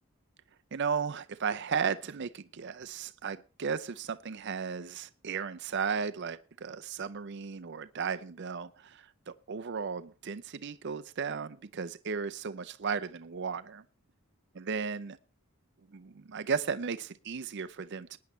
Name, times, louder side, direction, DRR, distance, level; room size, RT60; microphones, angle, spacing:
voice 1, 0.7-13.8 14.6-15.2 15.9-18.2, right 6 dB, 50° right, 0.5 m, -35 dB
20.0 x 9.5 x 3.1 m
head